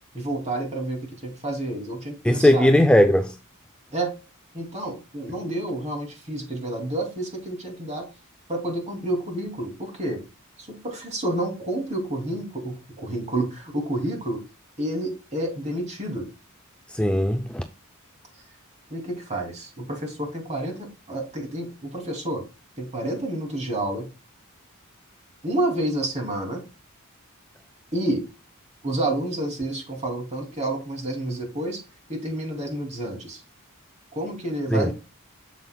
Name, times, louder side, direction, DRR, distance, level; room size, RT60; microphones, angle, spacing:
voice 1, 0.1-2.7 3.9-4.1 4.5-8.1 8.5-10.2 10.6-14.4 14.8-16.3 18.9-22.4 22.8-24.0 25.4-26.6 27.9-28.2 28.8-31.8 32.1-33.4 34.1-34.9, right 1 dB, 30° right, 2.7 m, -29 dB
voice 2, 2.2-3.4 16.9-17.6 34.7-34.9, left 1 dB, 5° left, 0.4 m, -18 dB
7.4 x 7.4 x 2.3 m
head